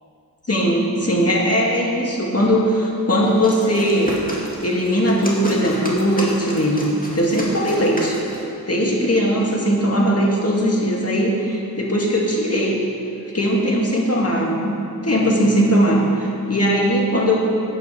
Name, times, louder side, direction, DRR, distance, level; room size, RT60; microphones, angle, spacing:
voice 1, 0.5-4.2 4.6-8.2 8.7-12.9 13.3-14.7 15.0-17.4, equal, 40° left, -2 dB, 2.1 m, -19 dB
sound 1, 3.2-8.5, left 1 dB, 20° left, 2.2 m, -33 dB
14.5 x 9.0 x 3.3 m, 2.6 s
wide cardioid pair, 50°, 38 cm